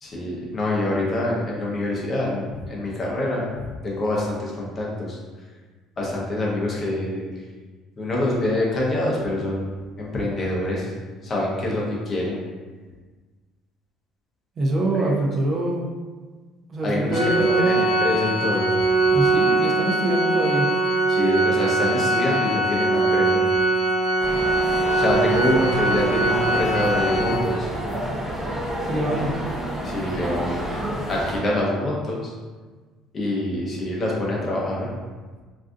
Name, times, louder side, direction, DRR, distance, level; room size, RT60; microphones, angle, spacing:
voice 1, 0.0-5.2 6.0-7.2 8.0-10.9 11.2-12.4 14.9-15.1 16.8-18.7 21.1-23.4 24.9-27.7 29.8-30.6 31.1-32.3 33.1-34.9, left 1 dB, 30° left, -4 dB, 0.7 m, -25 dB
voice 2, 14.6-15.8 16.7-17.8 19.1-20.6 28.9-29.4, right 1 dB, 35° right, 0 dB, 0.5 m, -24 dB
Organ, 17.1-27.8, right 2 dB, 70° left, 0.4 m, -21 dB
sound 1, 24.2-31.4, right 1 dB, 10° right, 1.1 m, -29 dB
2.5 x 2.3 x 3.7 m, 1.4 s
cardioid pair, 150°, 0 cm